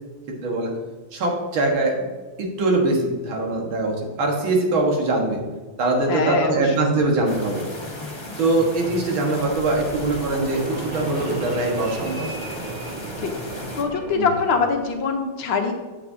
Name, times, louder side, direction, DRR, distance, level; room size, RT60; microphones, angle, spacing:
voice 1, 0.4-0.7 1.1-2.0 2.4-5.4 5.8-7.7 8.4-12.3 14.2-14.3, right 2 dB, 65° right, 0 dB, 2.3 m, -22 dB
voice 2, 6.1-6.7 13.2-13.3 13.7-15.7, left 5 dB, 65° left, 3 dB, 1.6 m, -23 dB
sound 1, 7.3-13.8, left 1 dB, 40° left, 0.3 m, -36 dB
Fixed-wing aircraft airplane, 9.3-15.0, right 3 dB, 45° right, 0.6 m, -35 dB
9.4 x 7.4 x 2.7 m, 1.3 s
omnidirectional pair, 2.4 m